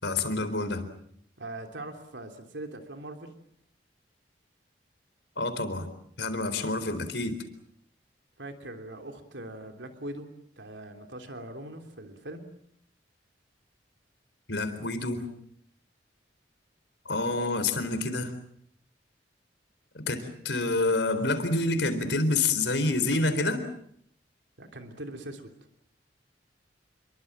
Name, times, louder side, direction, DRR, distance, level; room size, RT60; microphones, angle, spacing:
voice 1, 0.0-0.9 5.4-5.9 6.2-7.3 14.5-15.2 17.1-18.3 20.1-23.6, left 2 dB, 75° left, 10 dB, 4.1 m, -27 dB
voice 2, 1.4-3.3 8.4-10.3 10.6-12.4 24.6-25.5, right 1 dB, 80° right, 5 dB, 3.3 m, -41 dB
28.5 x 23.0 x 7.5 m, 0.68 s
head